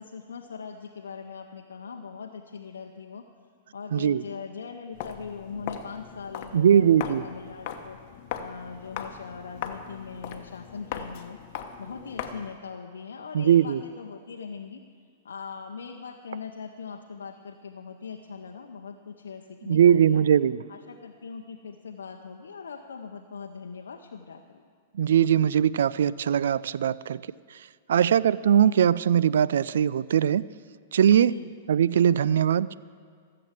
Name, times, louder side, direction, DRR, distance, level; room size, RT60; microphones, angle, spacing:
voice 1, 0.0-3.2 3.7-8.0 8.4-11.4 11.8-14.8 15.2-20.2 20.7-24.6 27.9-28.3 31.2-31.5, left 5 dB, 90° left, 3 dB, 0.7 m, -41 dB
voice 2, 3.9-4.2 6.5-7.2 13.3-13.8 19.6-20.6 24.9-27.2 27.9-30.4 30.9-31.3 31.7-32.7, right 9 dB, 75° right, 19 dB, 0.3 m, -21 dB
Walk footsteps, 4.9-12.6, left 8 dB, 50° left, 1.0 m, -39 dB
15.0 x 7.8 x 7.4 m, 2.1 s
hypercardioid pair, 120°, 0 cm